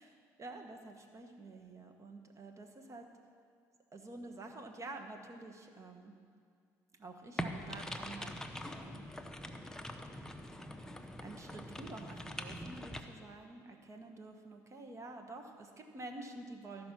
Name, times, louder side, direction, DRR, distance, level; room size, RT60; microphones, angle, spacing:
voice 1, 0.0-3.1 3.9-6.1 7.0-8.4 8.7-9.1 11.2-16.9, right 2 dB, 35° right, 4 dB, 1.4 m, -49 dB
sound 1, 7.4-13.0, equal, 5° left, 0.9 m, -43 dB
13.0 x 5.3 x 6.1 m, 2.2 s
hypercardioid pair, 65°, 9 cm